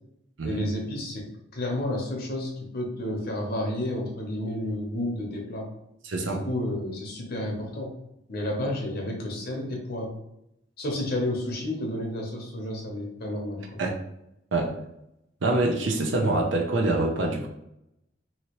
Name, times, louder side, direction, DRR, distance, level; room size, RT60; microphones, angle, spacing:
voice 1, 0.4-1.3 1.5-5.7 6.2-7.9 8.3-10.2 10.8-13.8, left 1 dB, 50° left, 0 dB, 0.8 m, -31 dB
voice 2, 6.0-6.4 13.8-13.9 14.5-14.8 15.4-17.5, right 2 dB, 70° right, 2 dB, 0.6 m, -25 dB
2.9 x 2.8 x 2.9 m, 0.82 s
head